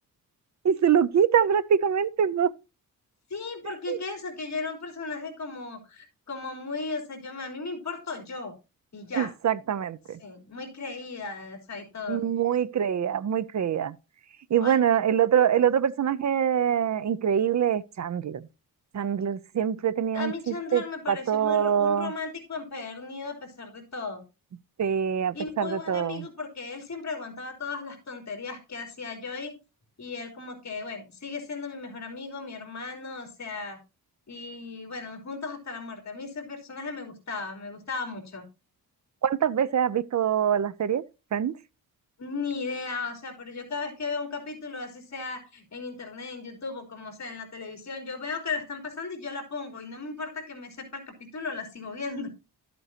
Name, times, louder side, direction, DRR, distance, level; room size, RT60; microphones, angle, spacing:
voice 1, 0.6-2.5 3.9-4.0 9.1-10.2 12.1-13.9 14.5-18.4 18.9-20.8 21.1-22.1 24.8-26.2 39.2-41.0 41.3-41.5, right 8 dB, 50° right, 0.6 m, -24 dB
voice 2, 3.3-8.5 8.9-9.3 10.2-12.2 14.6-14.8 20.1-24.2 25.3-29.5 30.0-33.8 34.3-38.4 42.2-52.3, left 4 dB, 45° left, 3.8 m, -36 dB
12.5 x 8.2 x 2.8 m
cardioid pair, 100°, 37 cm